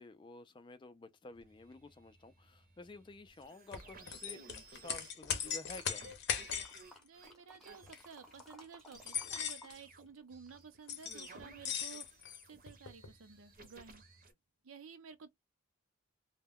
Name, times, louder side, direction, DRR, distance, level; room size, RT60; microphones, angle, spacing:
voice 1, 0.0-4.4 4.7-6.1, left 2 dB, 25° left, 0.3 m, -51 dB
sound 1, 1.3-7.3 7.6-8.6 8.9-10.7 11.0-14.3, right 3 dB, 45° right, 0.7 m, -57 dB
sound 2, 3.7-6.8 7.8-8.0 8.4-8.5 8.9-9.8 10.9-11.3 11.6-13.1, left 7 dB, 55° left, 0.6 m, -39 dB
sound 3, 6.5-9.7 10.0-11.5 12.0-12.1, left 1 dB, ahead, 0.7 m, -59 dB
voice 2, 7.0-12.0 12.5-14.0 14.6-15.3, right 6 dB, 80° right, 0.5 m, -53 dB
2.2 x 2.1 x 3.4 m
head